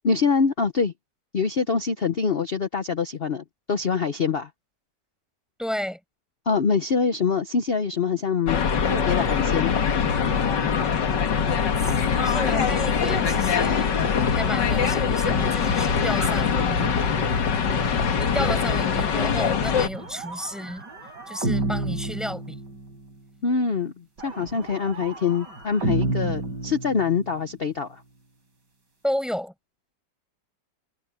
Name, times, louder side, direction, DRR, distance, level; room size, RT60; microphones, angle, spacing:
voice 1, 0.0-0.9 1.3-4.5 6.5-8.6 8.9-9.7 23.4-28.0, left 5 dB, 40° left, 0.9 m, -24 dB
voice 2, 5.6-6.0 11.8-13.9 14.3-17.0 18.2-20.8 21.3-22.6 29.0-29.5, equal, ahead, 5.9 m, -32 dB
sound 1, 8.5-19.9, left 6 dB, 80° left, 2.2 m, -23 dB
sound 2, 19.8-23.1 24.2-27.4, right 2 dB, 80° right, 5.4 m, -30 dB
omnidirectional pair, 1.9 m